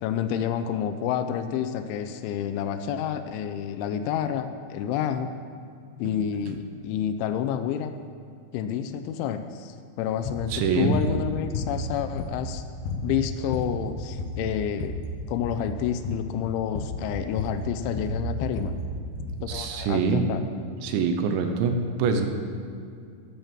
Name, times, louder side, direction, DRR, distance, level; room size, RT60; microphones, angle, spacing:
voice 1, 0.0-5.3 6.0-7.9 8.5-12.6 13.0-15.0 15.3-18.7 19.4-20.4, left 9 dB, 85° left, 9 dB, 3.0 m, -29 dB
sound 1, 10.2-10.5 10.9-11.1 11.5-12.5 12.8-13.1 13.4-13.8 14.1-15.0 15.4-15.7 16.0-16.3 16.7-17.0 17.4-19.4, left 3 dB, 70° left, 2.2 m, -32 dB
voice 2, 10.5-11.0 19.5-20.2 20.8-22.3, right 5 dB, 80° right, 5 dB, 3.1 m, -24 dB
10.5 x 8.9 x 7.2 m, 2.4 s
omnidirectional pair, 5.4 m